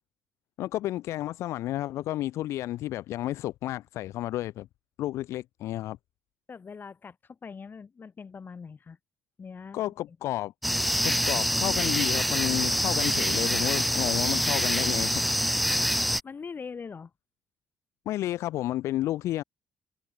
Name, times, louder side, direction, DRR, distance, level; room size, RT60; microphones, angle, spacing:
voice 1, 0.6-4.7 5.0-6.0 9.7-10.5 11.0-15.7 18.1-19.4, left 14 dB, 70° left, 0.7 m, -31 dB
voice 2, 6.5-9.0 9.4-9.8 10.1-10.2 15.7-15.8 16.2-17.1, left 5 dB, 40° left, 6.7 m, -42 dB
sound 1, 10.6-16.2, equal, ahead, 0.8 m, -26 dB
hypercardioid pair, 50°, 5 cm